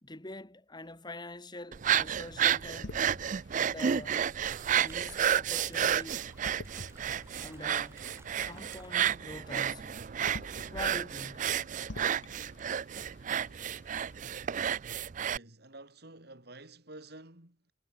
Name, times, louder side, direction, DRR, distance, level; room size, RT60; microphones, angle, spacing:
voice 1, 0.0-3.0 3.6-4.3 4.7-6.2 7.4-8.0 8.4-10.0 10.7-11.5, left 2 dB, 25° left, 2.2 m, -45 dB
sound 1, 1.7-15.4, right 9 dB, 45° right, 0.4 m, -31 dB
sound 2, 2.7-14.5, left 2 dB, 70° left, 1.3 m, -50 dB
sound 3, 3.8-9.1, right 3 dB, 15° right, 5.4 m, -57 dB
voice 2, 15.3-17.7, right 2 dB, 60° right, 4.7 m, -50 dB
head